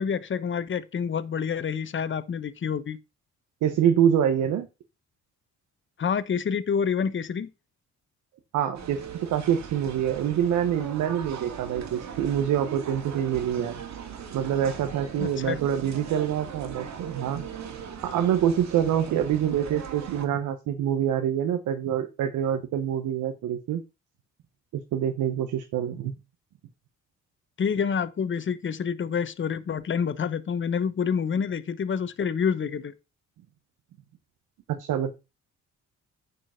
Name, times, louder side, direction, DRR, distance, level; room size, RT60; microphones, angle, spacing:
voice 1, 0.0-3.0 6.0-7.5 15.2-15.6 27.6-32.9, left 6 dB, 40° left, 1.0 m, -28 dB
voice 2, 3.6-4.7 8.5-13.8 14.3-17.4 18.0-23.8 24.7-26.1 34.7-35.1, right 9 dB, 80° right, 1.2 m, -26 dB
sound 1, 8.7-20.3, right 7 dB, 65° right, 2.5 m, -39 dB
9.3 x 5.1 x 5.8 m
cardioid pair, 90°, 30 cm